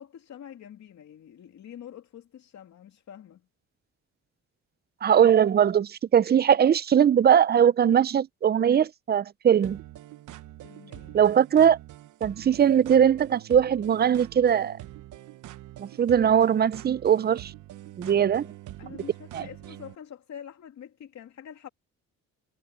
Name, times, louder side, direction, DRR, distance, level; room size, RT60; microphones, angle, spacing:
voice 1, 0.0-3.5 10.6-11.2 18.0-18.5 18.8-21.7, left 9 dB, 65° left, 2.6 m, -46 dB
voice 2, 5.0-9.8 11.1-11.8 12.2-14.8 15.8-17.5 18.0-18.5 19.3-19.4, right 9 dB, 35° right, 0.5 m, -20 dB
sound 1, 9.6-19.9, right 14 dB, 75° right, 1.1 m, -45 dB
cardioid pair, 90°, 30 cm